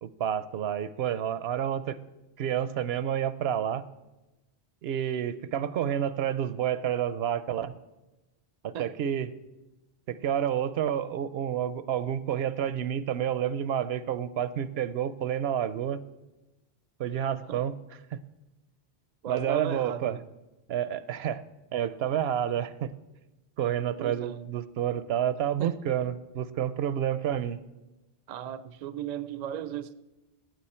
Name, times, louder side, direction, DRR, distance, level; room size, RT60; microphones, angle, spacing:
voice 1, 0.0-2.0 2.4-3.8 4.8-7.7 8.6-9.3 10.1-16.0 17.0-17.7 18.1-18.2 19.3-20.2 20.7-21.4 21.7-22.9 23.6-27.6, right 10 dB, 80° right, 0.8 m, -29 dB
voice 2, 17.3-17.6 19.2-20.2 24.0-24.5 25.6-25.8 28.3-29.9, right 9 dB, 55° right, 0.5 m, -36 dB
15.5 x 9.2 x 4.3 m
omnidirectional pair, 1.1 m